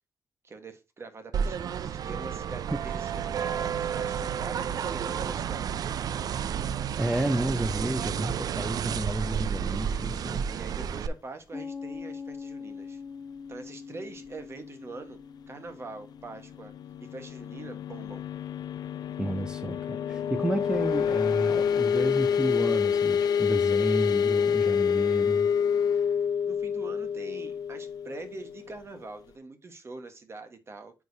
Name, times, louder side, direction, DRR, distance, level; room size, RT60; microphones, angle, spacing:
voice 1, 0.4-5.8 10.5-13.0 13.5-15.2 15.5-16.7 17.0-18.2 26.5-30.9, right 3 dB, 40° right, 1.3 m, -43 dB
sound 1, 1.3-11.1, right 8 dB, 70° right, 0.4 m, -31 dB
voice 2, 7.0-10.4 19.2-25.5, right 1 dB, 10° right, 0.5 m, -31 dB
Piano, 11.5-18.7, left 5 dB, 25° left, 1.1 m, -44 dB
sound 2, 16.4-28.9, left 7 dB, 80° left, 0.5 m, -27 dB
9.0 x 4.8 x 2.7 m
cardioid pair, 100°, 7 cm